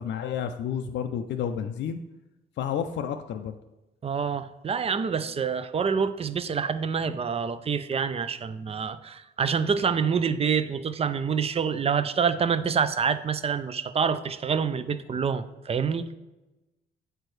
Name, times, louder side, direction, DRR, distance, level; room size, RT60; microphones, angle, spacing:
voice 1, 0.0-2.0 2.6-3.5, left 8 dB, 65° left, 6 dB, 0.4 m, -30 dB
voice 2, 4.0-16.1, right 6 dB, 30° right, 13 dB, 0.4 m, -27 dB
7.9 x 4.4 x 3.2 m, 1.0 s
cardioid pair, 90°, 20 cm